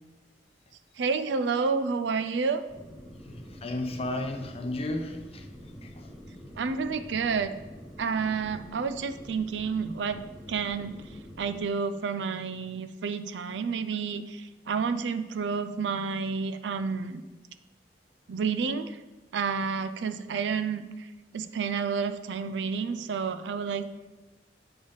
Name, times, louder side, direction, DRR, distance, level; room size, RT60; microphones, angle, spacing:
voice 1, 1.0-2.6 6.6-7.5 8.0-10.2 10.5-10.9 11.4-17.2 18.3-19.0 19.3-21.1 21.3-23.9, right 5 dB, 80° right, 10 dB, 0.4 m, -30 dB
sound 1, 2.7-11.6, equal, 5° right, 1.0 m, -46 dB
voice 2, 3.2-6.2, left 1 dB, 35° left, 5 dB, 0.6 m, -34 dB
7.9 x 3.4 x 5.4 m, 1.1 s
head